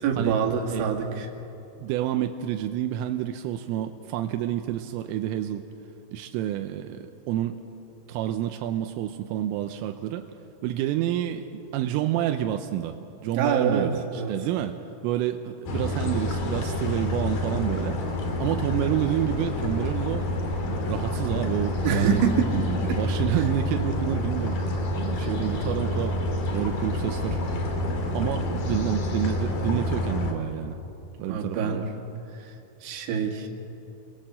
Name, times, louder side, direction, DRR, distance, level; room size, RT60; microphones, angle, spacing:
voice 1, 0.0-1.3 13.3-14.5 21.8-22.5 22.9-23.0 31.3-31.9 32.3-32.5 32.8-33.5, right 6 dB, 70° right, 2 dB, 4.4 m, -25 dB
voice 2, 1.8-5.7 6.1-7.6 8.1-10.3 10.6-18.0 18.4-20.3 20.9-22.2 22.5-24.6 25.0-26.2 26.5-27.4 28.1-30.8 31.2-31.9, right 12 dB, 90° right, 6 dB, 3.5 m, -29 dB
sound 1, 15.7-30.3, left 1 dB, 50° left, 3.9 m, -28 dB
30.0 x 22.5 x 7.6 m, 2.8 s
omnidirectional pair, 5.8 m